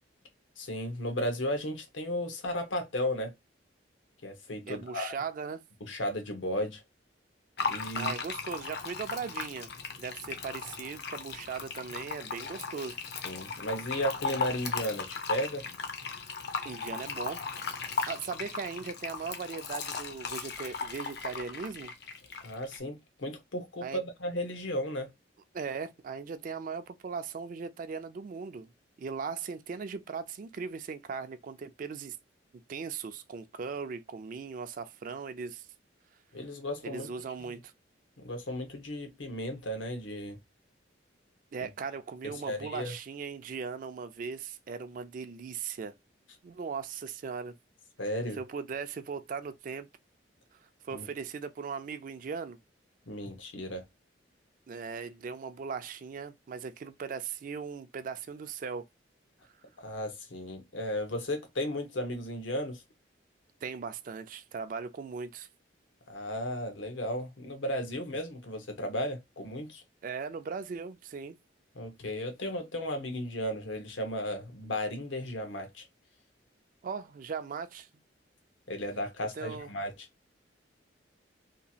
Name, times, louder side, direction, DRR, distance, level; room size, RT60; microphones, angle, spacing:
voice 1, 0.6-3.3 4.2-5.1 5.8-6.8 7.6-8.1 13.2-15.6 22.4-25.1 36.3-37.1 37.4-37.5 38.2-40.4 41.6-41.7 42.4-42.9 48.0-48.4 50.9-51.1 53.1-53.8 59.8-62.8 66.1-69.8 71.8-75.8 78.7-80.1, equal, 85° left, 0.9 m, -35 dB
voice 2, 4.7-5.6 7.9-9.7 10.0-13.0 16.6-17.4 18.1-21.9 23.8-24.0 25.5-28.7 29.0-32.2 32.7-35.7 36.8-37.7 41.5-45.9 46.4-47.5 48.3-49.9 50.5-50.6 50.8-52.6 54.7-58.8 63.6-65.5 70.0-71.4 76.8-77.9 79.3-79.7, right 5 dB, 45° right, 0.3 m, -38 dB
Fill (with liquid), 7.6-22.8, left 5 dB, 60° left, 0.6 m, -37 dB
2.9 x 2.3 x 2.6 m
head